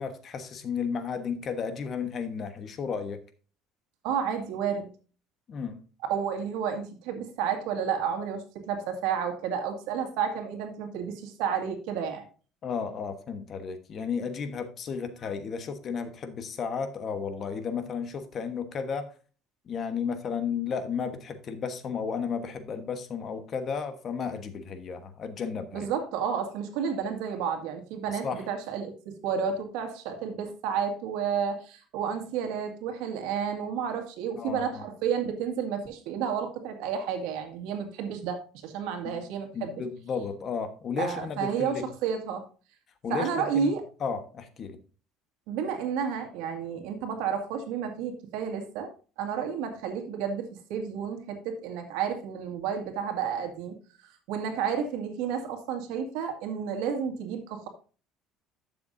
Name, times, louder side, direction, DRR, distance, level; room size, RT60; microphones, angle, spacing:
voice 1, 0.0-3.2 5.5-5.8 12.6-19.1 19.7-25.9 28.2-28.5 34.4-34.9 39.0-39.3 39.5-41.9 43.0-43.7 44.0-44.8, left 6 dB, 40° left, 1.2 m, -33 dB
voice 2, 4.0-4.9 6.0-12.2 25.7-39.7 41.0-42.4 43.1-43.8 45.5-48.9 49.2-53.8 54.0-57.7, right 7 dB, 85° right, 1.9 m, -31 dB
11.5 x 7.0 x 2.6 m
cardioid pair, 140°, 0 cm